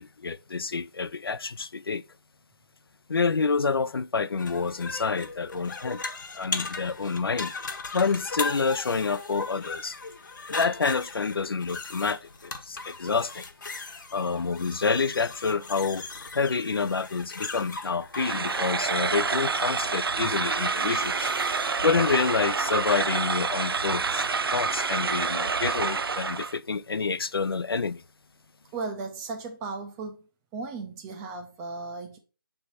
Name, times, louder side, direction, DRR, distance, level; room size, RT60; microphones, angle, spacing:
voice 1, 0.0-2.0 3.1-6.0 6.3-7.5 7.9-10.0 10.5-13.5 14.1-16.1 16.3-21.3 21.8-28.0, left 4 dB, 85° left, 0.4 m, -28 dB
sound 1, 4.4-22.3, left 4 dB, 55° left, 0.9 m, -38 dB
sound 2, 18.1-26.6, right 5 dB, 85° right, 0.4 m, -28 dB
voice 2, 28.7-30.2 30.5-32.2, right 3 dB, 10° right, 0.4 m, -36 dB
6.7 x 3.4 x 4.1 m
figure-of-eight pair, 155°, 12 cm